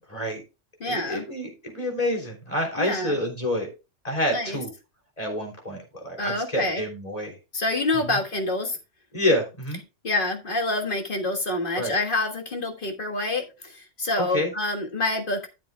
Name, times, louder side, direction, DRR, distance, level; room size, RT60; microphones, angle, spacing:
voice 1, 0.1-0.4 0.8-3.7 4.0-4.7 5.2-7.3 8.1-8.2 9.1-9.8 11.8-12.0 14.2-14.5, left 1 dB, 30° left, 3.5 m, -28 dB
voice 2, 0.8-1.3 2.8-3.2 4.3-4.6 6.2-6.8 7.5-8.8 10.0-15.5, left 2 dB, 45° left, 1.6 m, -27 dB
13.0 x 7.6 x 2.2 m
omnidirectional pair, 1.2 m